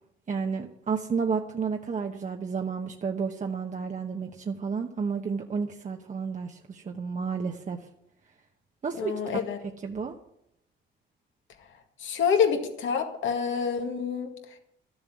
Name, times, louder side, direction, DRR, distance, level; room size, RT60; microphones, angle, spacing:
voice 1, 0.3-7.8 8.8-9.1 9.8-10.2, right 5 dB, 40° right, 3 dB, 1.0 m, -31 dB
voice 2, 9.0-9.6 12.0-14.3, left 6 dB, 75° left, 5 dB, 2.0 m, -27 dB
12.5 x 7.3 x 9.5 m, 0.81 s
cardioid pair, 90°, 20 cm